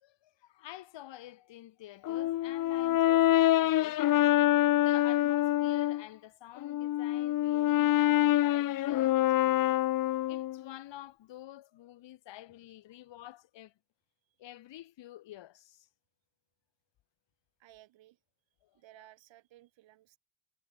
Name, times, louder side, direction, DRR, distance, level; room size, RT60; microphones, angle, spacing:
voice 1, 0.0-4.0 4.7-9.8 10.3-13.7 14.4-15.9 18.6-18.8, left 14 dB, 60° left, 3.1 m, -49 dB
Brass instrument, 2.0-6.0 6.6-10.6, left 14 dB, 40° left, 0.7 m, -26 dB
voice 2, 17.6-18.2 18.7-20.2, right 15 dB, 65° right, 5.0 m, -58 dB
hypercardioid pair, 70°, 50 cm